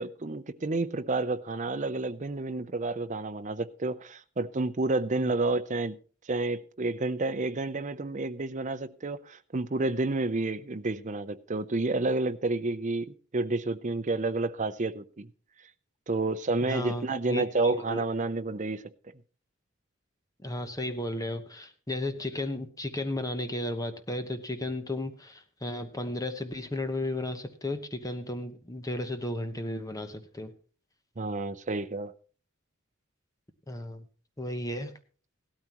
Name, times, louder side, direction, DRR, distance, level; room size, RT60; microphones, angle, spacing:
voice 1, 0.0-6.0 6.3-15.3 16.1-18.9 31.2-32.1, right 2 dB, 35° right, 0.6 m, -30 dB
voice 2, 16.7-18.0 20.4-30.5 33.7-34.1 34.4-34.9, left 1 dB, 15° left, 1.0 m, -34 dB
17.0 x 13.0 x 3.0 m
head